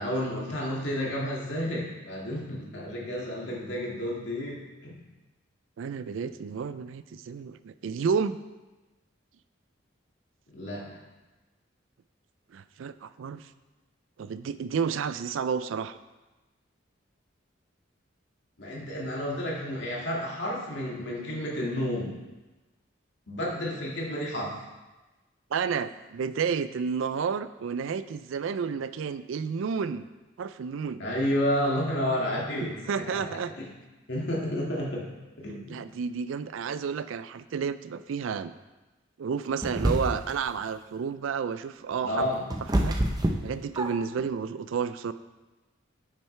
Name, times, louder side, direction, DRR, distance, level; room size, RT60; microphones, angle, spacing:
voice 1, 0.0-5.0 10.5-10.8 18.6-22.1 23.3-24.6 31.0-33.2 33.6-33.7 34.1-35.1 35.4-35.8 42.0-42.4, equal, 65° left, -4 dB, 2.1 m, -31 dB
voice 2, 5.8-8.4 12.5-13.4 14.2-16.0 25.5-30.1 30.4-31.0 32.9-33.5 35.7-38.5 39.2-42.2 42.8-43.0 43.4-45.1, right 6 dB, 80° right, 13 dB, 0.4 m, -31 dB
sound 1, 39.6-40.4 41.9-44.2, right 1 dB, 20° right, 0.6 m, -27 dB
9.2 x 7.5 x 3.3 m, 1.1 s
head